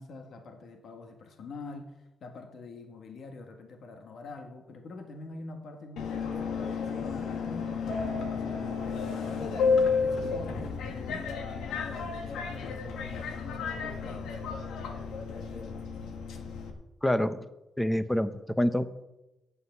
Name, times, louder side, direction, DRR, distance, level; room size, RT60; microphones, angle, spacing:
voice 1, 0.0-14.4, left 3 dB, 55° left, 5 dB, 1.5 m, -45 dB
Subway metro underground, 6.0-16.7, left 5 dB, 85° left, 1.7 m, -32 dB
voice 2, 17.0-17.4 17.8-19.0, left 1 dB, 5° left, 12 dB, 0.7 m, -27 dB
9.8 x 8.3 x 8.1 m, 0.98 s
cardioid pair, 130°, 0 cm